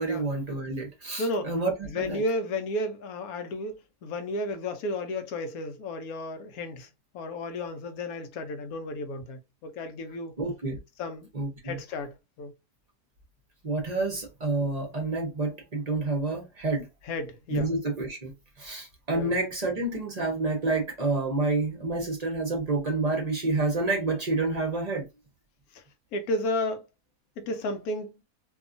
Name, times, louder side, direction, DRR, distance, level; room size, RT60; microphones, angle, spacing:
voice 1, 0.0-2.2 10.4-10.8 11.3-11.8 13.6-16.9 17.5-25.1, right 3 dB, 40° right, 0.6 m, -29 dB
voice 2, 1.2-1.5 1.8-6.9 7.1-10.3 11.0-11.3 11.6-12.5 17.0-17.7 19.1-19.3 25.7-25.8 26.1-26.8 27.4-28.1, left 2 dB, 85° left, 1.1 m, -33 dB
2.7 x 2.3 x 2.5 m
omnidirectional pair, 1.5 m